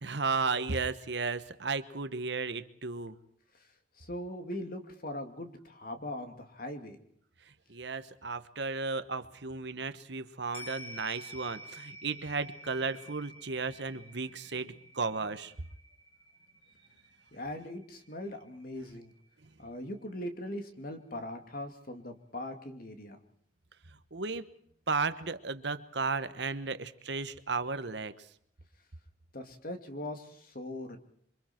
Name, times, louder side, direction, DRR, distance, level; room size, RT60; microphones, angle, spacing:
voice 1, 0.0-3.2 7.7-15.5 24.1-24.5 24.9-28.3, right 4 dB, 65° right, 12 dB, 1.2 m, -34 dB
voice 2, 4.0-7.0 17.3-19.1 19.6-23.2 29.3-31.0, left 1 dB, 50° left, 6 dB, 2.5 m, -40 dB
sound 1, 10.5-19.1 19.5-19.6, equal, 30° left, 4.5 m, -50 dB
27.5 x 24.5 x 4.5 m, 0.65 s
head